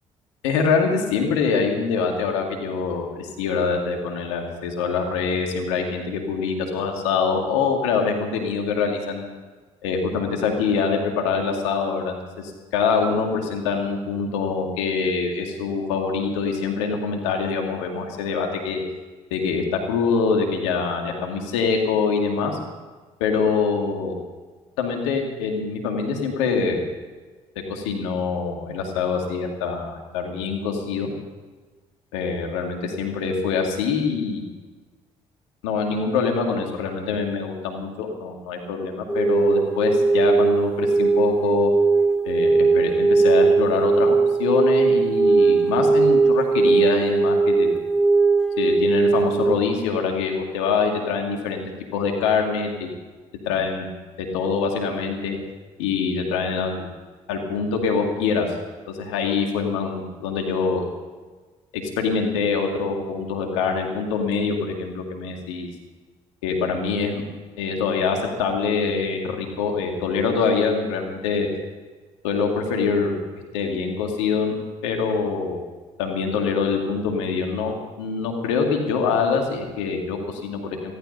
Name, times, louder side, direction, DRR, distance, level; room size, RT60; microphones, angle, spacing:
voice 1, 0.4-9.3 9.8-12.2 12.4-18.8 19.3-22.6 23.2-24.1 24.8-26.8 27.7-31.1 32.1-34.4 35.6-41.7 42.3-47.7 48.6-51.6 51.9-52.9 53.5-55.4 55.8-56.9 57.3-58.5 58.9-60.9 62.0-65.7 66.4-67.2 67.6-71.5 72.2-73.1 73.5-74.5 74.8-75.6 76.0-81.0, left 5 dB, 90° left, 2 dB, 2.2 m, -24 dB
sound 1, 39.1-49.6, right 4 dB, 5° left, 1.7 m, -19 dB
14.5 x 14.0 x 5.4 m, 1.4 s
hypercardioid pair, 60°, 15 cm